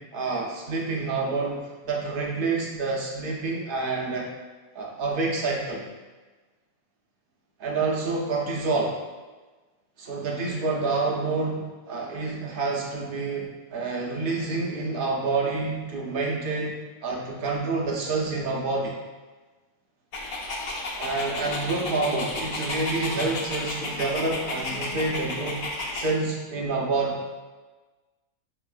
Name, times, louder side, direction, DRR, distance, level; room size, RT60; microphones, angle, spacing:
voice 1, 0.1-4.3 4.7-5.9 7.6-9.0 10.0-19.0 21.0-25.6 25.9-27.2, right 3 dB, 60° right, -2 dB, 0.6 m, -28 dB
Dog, 20.1-26.1, left 2 dB, 85° left, 1.1 m, -32 dB
5.1 x 2.9 x 2.3 m, 1.3 s
omnidirectional pair, 1.4 m